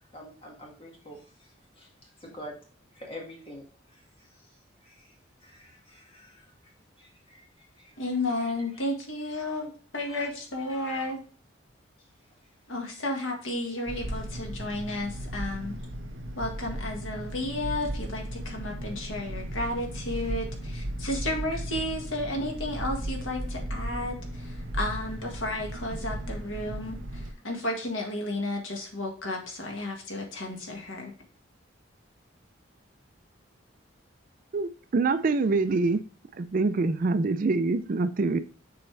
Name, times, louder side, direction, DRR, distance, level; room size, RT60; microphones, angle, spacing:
voice 1, 0.1-2.6 2.9-4.5 4.8-5.2 5.4-6.7 7.0-7.5 7.8-8.0, equal, 30° left, 2.0 m, -47 dB
voice 2, 8.0-11.2 12.7-15.8 16.3-31.1, left 1 dB, 80° left, 1.7 m, -33 dB
sound 1, 13.9-27.3, right 1 dB, 75° right, 1.4 m, -36 dB
voice 3, 34.5-36.0 36.4-38.4, right 3 dB, 45° right, 0.4 m, -25 dB
7.0 x 4.2 x 3.3 m
head